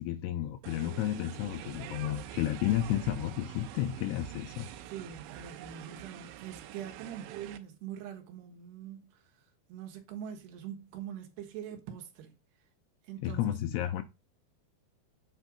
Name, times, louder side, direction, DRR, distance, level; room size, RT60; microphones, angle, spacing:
voice 1, 0.0-4.7 13.2-14.0, left 12 dB, 85° left, 2.4 m, -32 dB
sound 1, 0.6-7.6, right 11 dB, 85° right, 3.0 m, -45 dB
voice 2, 4.9-9.2 9.7-12.3 13.1-13.5, right 9 dB, 65° right, 3.2 m, -43 dB
8.3 x 4.5 x 5.0 m
omnidirectional pair, 5.5 m